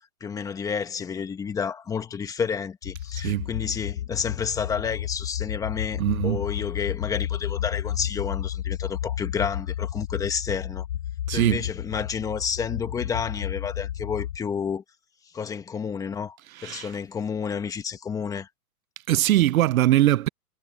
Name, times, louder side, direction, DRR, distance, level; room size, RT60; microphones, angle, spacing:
voice 1, 0.2-10.9 11.3-14.8 15.3-16.4 16.6-18.5, left 6 dB, 10° left, 1.2 m, -30 dB
sound 1, 2.8-14.4, left 11 dB, 85° left, 0.9 m, -32 dB
voice 2, 3.2-3.5 6.0-6.4 11.3-11.6 16.6-16.9 19.1-20.3, right 14 dB, 70° right, 0.5 m, -21 dB
hypercardioid pair, 160°, 44 cm